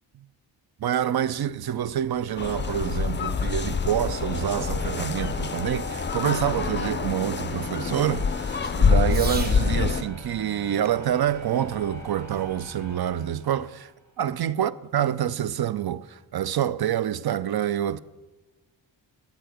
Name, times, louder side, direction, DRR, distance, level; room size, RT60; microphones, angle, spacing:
voice 1, 0.8-13.9 14.2-18.0, right 10 dB, 55° right, 0.5 m, -27 dB
sound 1, 1.1-14.0, left 1 dB, 35° right, 2.1 m, -42 dB
sound 2, 2.4-10.0, left 5 dB, 25° left, 0.4 m, -26 dB
Fireworks, 2.5-9.7 10.8-12.5, right 2 dB, 20° right, 1.2 m, -45 dB
9.0 x 8.2 x 5.1 m
cardioid pair, 60°, 46 cm